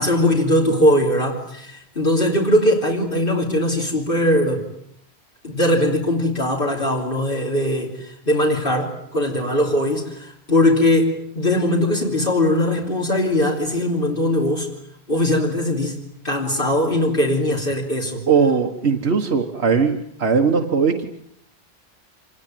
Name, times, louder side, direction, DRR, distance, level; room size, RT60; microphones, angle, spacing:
voice 1, 0.0-4.7 5.4-14.7 15.1-18.2, left 1 dB, 55° left, -1 dB, 3.6 m, -20 dB
voice 2, 18.3-21.1, right 5 dB, 80° right, 3 dB, 1.7 m, -19 dB
26.5 x 20.5 x 9.2 m, 0.72 s
omnidirectional pair, 1.1 m